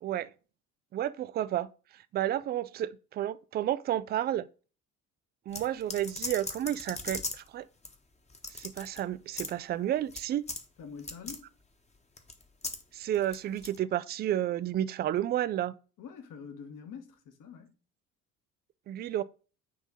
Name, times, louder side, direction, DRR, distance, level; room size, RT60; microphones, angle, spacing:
voice 1, 0.9-1.7 2.1-4.5 5.5-7.6 8.6-10.4 12.9-15.7 18.9-19.2, right 12 dB, 25° right, 0.4 m, -31 dB
sound 1, 5.5-7.5 7.8-7.9 8.3-9.0 9.3-9.5 10.1-10.2 10.5-10.6 11.0-11.4 12.2-12.8 13.1-13.8, left 3 dB, 15° left, 1.2 m, -38 dB
voice 2, 10.8-11.5 16.0-17.8, left 6 dB, 45° left, 1.4 m, -45 dB
9.3 x 3.5 x 4.0 m
figure-of-eight pair, 55°, 44 cm